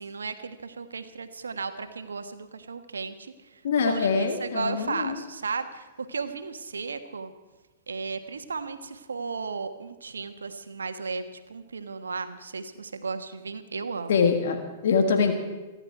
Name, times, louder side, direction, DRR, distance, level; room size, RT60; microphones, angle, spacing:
voice 1, 0.0-3.3 3.8-7.3 7.9-14.1, right 4 dB, 85° right, 9 dB, 1.3 m, -35 dB
voice 2, 3.6-5.2 14.1-14.6 14.8-15.3, left 5 dB, 65° left, 6 dB, 1.8 m, -23 dB
27.5 x 11.0 x 4.7 m, 1.2 s
hypercardioid pair, 110°, 0 cm